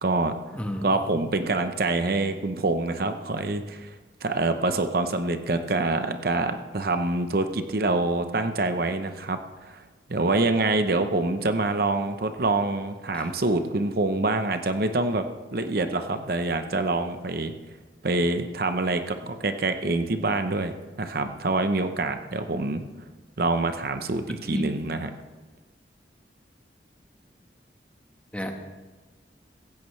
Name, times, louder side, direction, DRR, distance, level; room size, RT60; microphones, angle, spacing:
voice 1, 0.0-0.3 0.8-3.9 4.2-9.8 10.1-15.2 15.5-17.5 18.0-22.8 23.4-25.1, right 2 dB, 55° right, 8 dB, 0.8 m, -26 dB
voice 2, 0.5-0.9 13.1-13.3 24.5-24.7 28.3-28.5, equal, 10° left, 3 dB, 1.2 m, -31 dB
16.5 x 15.0 x 3.2 m, 1.3 s
head